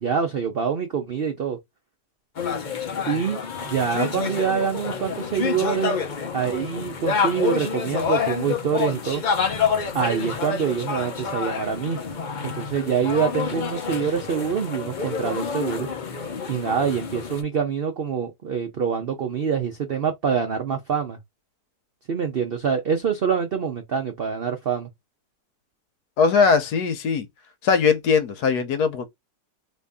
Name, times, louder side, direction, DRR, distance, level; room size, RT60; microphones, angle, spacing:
voice 1, 0.0-1.6 3.1-6.0 6.3-9.2 9.9-12.0 12.4-15.9 16.5-21.2 22.1-24.9, right 7 dB, 75° right, 0.5 m, -25 dB
sound 1, 2.4-17.4, left 6 dB, 55° left, 0.5 m, -28 dB
voice 2, 26.2-27.3 27.6-29.1, left 5 dB, 70° left, 1.2 m, -20 dB
3.0 x 2.6 x 3.4 m
omnidirectional pair, 1.8 m